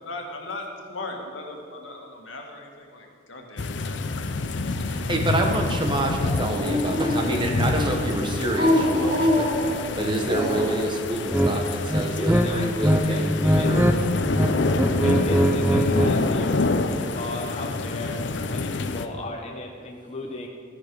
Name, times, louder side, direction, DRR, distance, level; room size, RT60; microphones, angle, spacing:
voice 1, 0.0-4.1, left 2 dB, 85° left, 1 dB, 1.8 m, -38 dB
sound 1, 3.6-19.1, left 3 dB, 65° left, 0.6 m, -28 dB
voice 2, 4.9-13.9, right 1 dB, 25° right, 2 dB, 1.2 m, -27 dB
Dog, 6.1-7.6 8.4-10.8, left 1 dB, 60° right, 3.3 m, -25 dB
sound 2, 11.3-11.5 11.9-13.0 13.3-14.0 14.2-16.1, equal, 10° right, 0.6 m, -21 dB
voice 3, 12.2-13.8 15.0-20.5, left 2 dB, 35° left, 1 dB, 0.8 m, -35 dB
13.0 x 10.0 x 4.7 m, 2.2 s
head